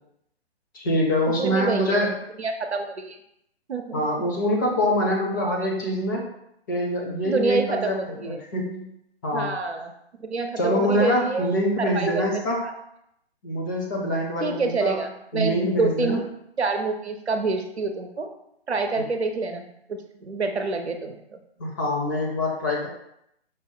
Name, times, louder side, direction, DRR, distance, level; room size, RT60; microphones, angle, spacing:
voice 1, 0.7-2.1 3.9-6.3 6.7-8.9 9.2-9.5 10.6-12.7 13.4-15.0 15.3-16.2 21.6-22.9, equal, 20° left, -2 dB, 0.6 m, -25 dB
voice 2, 1.4-2.0 2.4-3.2 3.7-4.3 7.2-8.4 9.3-9.9 10.2-11.5 11.8-12.2 12.6-12.7 14.4-16.3 16.6-18.3 18.7-21.2, right 3 dB, 80° right, 5 dB, 0.7 m, -27 dB
5.3 x 2.2 x 3.8 m, 0.77 s
figure-of-eight pair, 135°, 32 cm